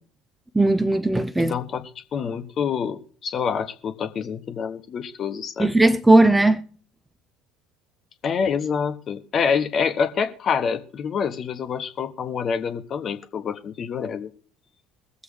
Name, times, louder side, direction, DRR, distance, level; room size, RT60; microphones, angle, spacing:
voice 1, 0.5-1.6 5.6-6.6, right 2 dB, 10° right, 0.6 m, -17 dB
voice 2, 1.4-5.7 8.2-14.3, left 6 dB, 40° left, 1.1 m, -27 dB
22.5 x 7.6 x 3.4 m
figure-of-eight pair, 60°, 0 cm